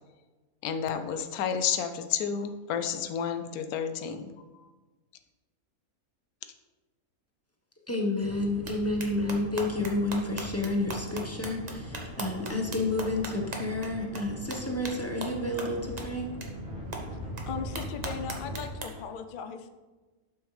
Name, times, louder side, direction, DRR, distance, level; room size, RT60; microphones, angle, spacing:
voice 1, 0.6-4.3, left 7 dB, 80° left, 8 dB, 1.1 m, -31 dB
voice 2, 7.9-16.3, left 2 dB, 10° left, 0 dB, 0.9 m, -30 dB
sound 1, 8.2-18.6, right 1 dB, 65° right, 2.2 m, -41 dB
sound 2, 8.7-8.8 9.0-13.9 14.1-14.2 14.5-14.6 14.8-14.9 15.2-15.3 15.6-15.7 16.0-16.1 16.4-16.5 16.9-17.0 17.4-17.5 17.8-18.8, right 3 dB, 30° right, 1.0 m, -37 dB
sound 3, 11.7-19.0, left 1 dB, 5° right, 1.6 m, -50 dB
voice 3, 17.5-19.7, left 6 dB, 55° left, 8 dB, 0.5 m, -38 dB
11.5 x 6.1 x 3.3 m, 1.2 s
omnidirectional pair, 1.6 m